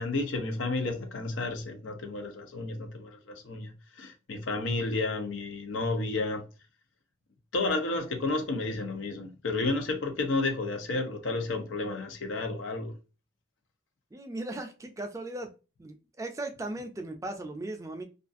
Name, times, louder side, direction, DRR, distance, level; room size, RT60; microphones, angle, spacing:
voice 1, 0.0-6.4 7.5-12.9, left 3 dB, 85° left, 0.6 m, -31 dB
voice 2, 14.1-15.5 15.8-18.0, right 2 dB, 15° right, 0.3 m, -37 dB
2.4 x 2.4 x 2.4 m
head